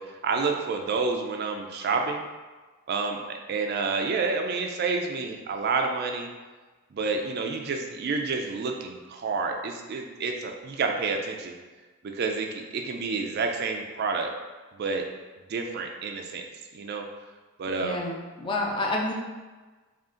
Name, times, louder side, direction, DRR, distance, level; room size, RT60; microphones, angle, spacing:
voice 1, 0.0-2.2 2.9-6.3 6.9-11.5 12.0-14.3 14.8-15.0 15.5-16.5 16.7-17.1 17.6-18.0, right 4 dB, 50° right, 3 dB, 0.4 m, -29 dB
voice 2, 17.8-19.1, left 2 dB, 25° left, -1 dB, 0.4 m, -29 dB
3.6 x 2.4 x 3.7 m, 1.3 s
head